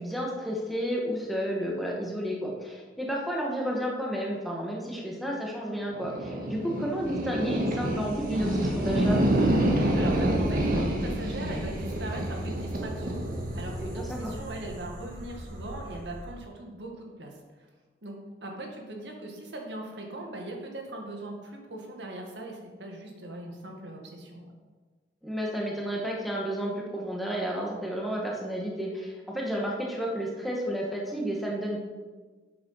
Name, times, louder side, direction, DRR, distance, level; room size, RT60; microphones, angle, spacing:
voice 1, 0.0-9.2 13.9-14.3 25.2-31.8, equal, ahead, -3 dB, 1.7 m, -31 dB
sound 1, 5.9-16.3, right 1 dB, 55° right, 1.6 m, -28 dB
voice 2, 9.9-13.2 13.5-17.3 18.0-24.4, right 1 dB, 85° right, 1 dB, 1.8 m, -40 dB
7.8 x 7.5 x 5.7 m, 1.4 s
head